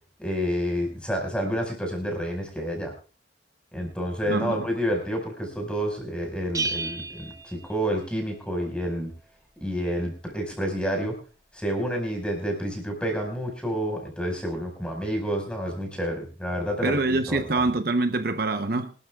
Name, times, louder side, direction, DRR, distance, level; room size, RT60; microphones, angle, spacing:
voice 1, 0.2-2.9 3.7-9.1 9.6-11.2 11.5-17.0 17.3-17.6, equal, 5° left, 5.0 m, -29 dB
voice 2, 4.3-4.6 16.8-18.9, right 2 dB, 55° right, 0.8 m, -25 dB
Bell, 6.5-8.4, right 3 dB, 20° right, 0.9 m, -33 dB
25.0 x 12.5 x 2.3 m
head